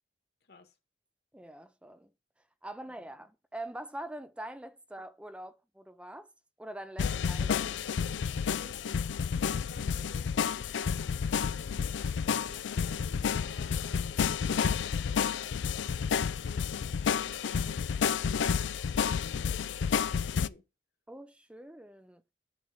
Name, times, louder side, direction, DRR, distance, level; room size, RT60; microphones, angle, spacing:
voice 1, 0.4-0.7 8.4-20.6, left 1 dB, 60° left, 1.6 m, -55 dB
voice 2, 1.3-2.1 2.6-6.3 6.6-7.8 21.1-22.2, right 1 dB, 5° right, 0.5 m, -44 dB
sound 1, 7.0-20.5, left 7 dB, 85° left, 0.4 m, -30 dB
9.4 x 3.9 x 5.0 m
head